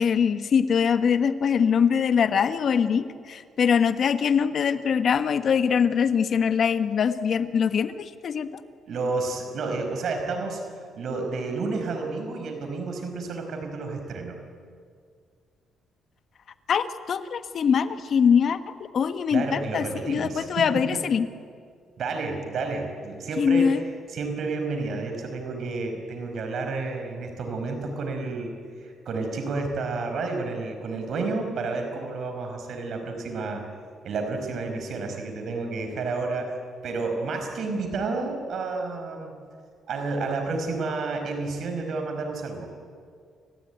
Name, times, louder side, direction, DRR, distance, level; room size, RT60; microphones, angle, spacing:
voice 1, 0.0-8.5 16.7-21.3 23.4-23.8, left 7 dB, 55° left, 10 dB, 1.4 m, -23 dB
voice 2, 8.9-10.6 11.0-14.4 19.3-21.0 22.0-23.8 24.1-33.7 34.0-36.5 36.8-39.4 39.9-42.7, right 3 dB, 65° right, 4 dB, 5.3 m, -30 dB
29.0 x 15.5 x 9.4 m, 2.1 s
cardioid pair, 90°, 0 cm